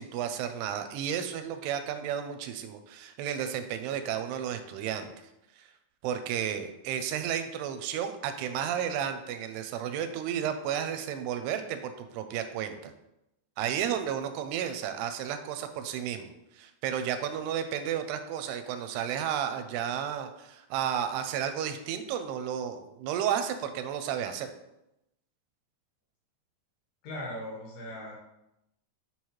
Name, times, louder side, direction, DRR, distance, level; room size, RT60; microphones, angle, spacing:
voice 1, 0.0-5.1 6.0-12.9 13.6-16.3 16.6-24.5, right 9 dB, 85° right, 8 dB, 2.7 m, -32 dB
voice 2, 27.0-28.1, left 1 dB, 70° left, -3 dB, 3.8 m, -38 dB
7.3 x 6.7 x 3.1 m, 0.88 s
omnidirectional pair, 4.7 m